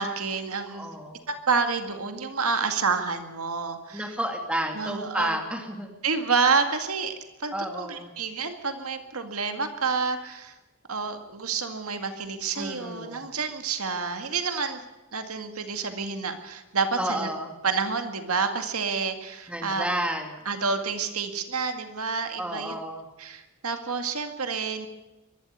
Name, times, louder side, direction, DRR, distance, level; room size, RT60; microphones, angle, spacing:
voice 1, 0.0-0.9 1.3-4.1 4.7-5.4 6.0-7.1 7.4-10.5 10.9-14.8 15.1-17.3 17.6-19.8 20.5-22.7 23.2-24.9, right 5 dB, 85° right, 7 dB, 2.1 m, -29 dB
voice 2, 0.7-1.3 3.9-5.9 7.5-8.1 12.6-13.3 17.0-17.5 19.5-20.4 22.4-23.0, right 1 dB, 5° right, 3 dB, 2.4 m, -31 dB
22.5 x 12.5 x 9.6 m, 1.1 s
head